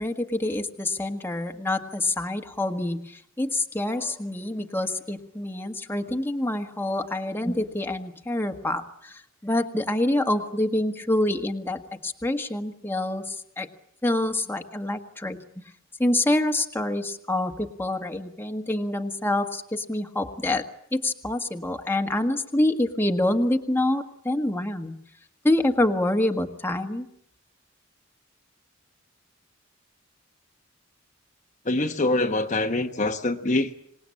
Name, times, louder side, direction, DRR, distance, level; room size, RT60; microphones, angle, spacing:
voice 1, 0.0-13.7 14.0-15.4 16.0-25.0 25.4-27.1, left 1 dB, 10° left, 5 dB, 1.5 m, -26 dB
voice 2, 31.6-33.7, left 2 dB, 35° left, 5 dB, 1.1 m, -24 dB
26.5 x 19.0 x 8.6 m, 0.72 s
head